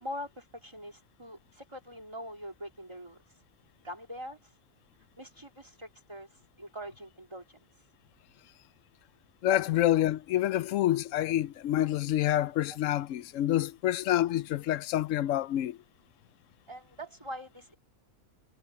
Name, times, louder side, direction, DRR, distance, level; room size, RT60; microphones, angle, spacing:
voice 1, 0.0-3.2 3.8-4.5 5.2-7.6 16.7-17.8, equal, 20° right, 2.5 m, -43 dB
voice 2, 9.4-15.8, left 13 dB, 75° left, 0.9 m, -27 dB
omnidirectional pair, 1.4 m